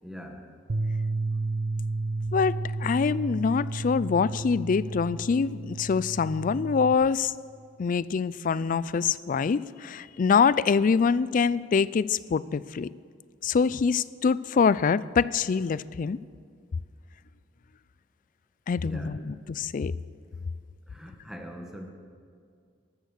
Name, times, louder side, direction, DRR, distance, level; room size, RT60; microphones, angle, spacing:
voice 1, 0.0-0.5 18.8-19.1 20.9-21.9, equal, 5° right, 3 dB, 1.3 m, -42 dB
Bass guitar, 0.7-6.9, right 3 dB, 60° right, 0.7 m, -32 dB
voice 2, 2.3-7.3 7.8-12.9 13.4-16.2 18.7-19.9, left 5 dB, 45° left, 19 dB, 0.3 m, -25 dB
13.0 x 13.0 x 6.6 m, 2.2 s
head